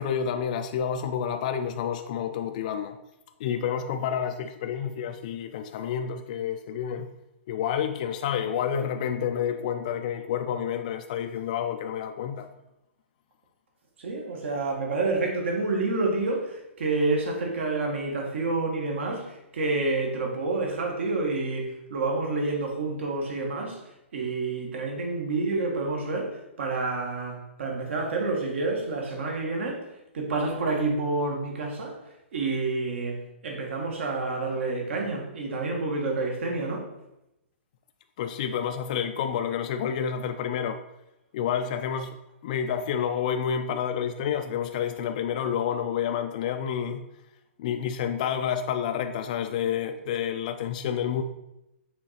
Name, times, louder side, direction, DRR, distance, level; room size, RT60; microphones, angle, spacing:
voice 1, 0.0-3.0 3.4-7.1 7.5-12.5 38.2-40.8 41.3-42.2 42.4-47.1 47.6-51.2, left 8 dB, 35° left, 6 dB, 0.3 m, -29 dB
voice 2, 14.0-23.8 24.1-29.8 30.1-31.9 32.3-36.9, right 3 dB, 65° right, 1 dB, 1.7 m, -28 dB
6.3 x 3.8 x 4.2 m, 0.89 s
hypercardioid pair, 165°, 7 cm